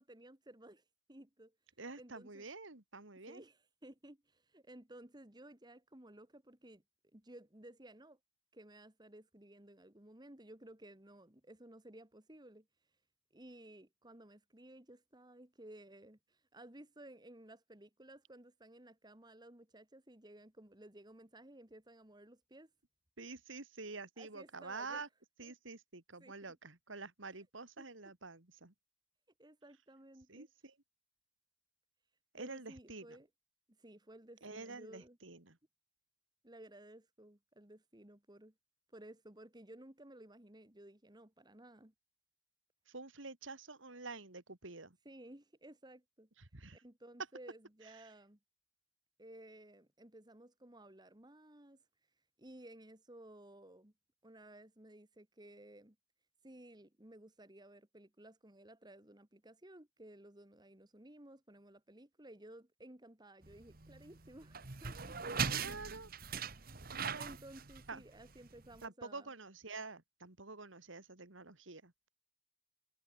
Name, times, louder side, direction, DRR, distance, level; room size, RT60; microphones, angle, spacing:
voice 1, 0.0-1.5 2.0-2.5 3.2-6.8 7.1-8.2 8.5-12.7 13.3-22.7 24.2-25.0 25.4-25.5 26.2-26.5 27.8-27.9 29.4-30.5 32.4-33.3 33.8-35.2 36.4-38.5 38.9-41.9 45.1-46.3 46.7-48.4 49.2-51.8 52.4-53.9 54.2-56.0 56.4-65.2 66.3-66.4 67.2-69.3, right 1 dB, 20° right, 2.0 m, -56 dB
voice 2, 1.8-3.4 23.2-25.1 25.4-28.7 30.3-30.8 32.3-33.2 34.4-35.6 42.9-45.0 46.5-46.8 47.8-48.1 65.5-66.1 66.9-67.4 67.9-68.0 68.8-72.1, right 3 dB, 85° right, 2.8 m, -48 dB
sound 1, 63.4-68.8, right 6 dB, 50° right, 1.5 m, -41 dB
head